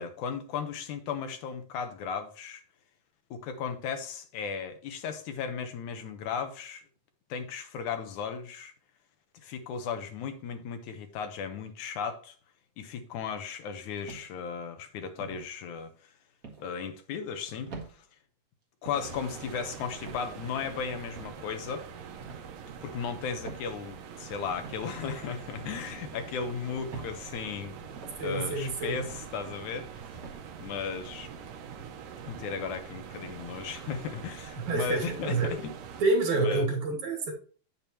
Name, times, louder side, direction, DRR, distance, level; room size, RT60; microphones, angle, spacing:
voice 1, 0.0-2.6 3.3-6.8 7.3-8.7 9.4-12.4 12.8-15.9 16.6-18.0 18.8-21.9 22.8-27.8 28.2-30.2 30.6-31.3 32.2-35.8 36.4-36.7, left 6 dB, 75° left, 2.2 m, -36 dB
sound 1, 14.1-14.5 15.2-15.5 16.4-16.7 17.7-17.9 18.8-19.1 20.1-20.3 21.1-21.4 22.2-22.5 23.4-23.7 24.6-24.8 25.7-25.9 26.9-27.2 27.9-28.2 29.1-29.3 30.2-30.4, right 4 dB, 35° right, 1.4 m, -44 dB
sound 2, 18.9-36.0, right 7 dB, 90° right, 2.7 m, -44 dB
voice 2, 28.2-29.0 34.6-35.6 36.0-37.3, right 3 dB, 60° right, 3.3 m, -28 dB
8.8 x 6.8 x 2.9 m
omnidirectional pair, 3.7 m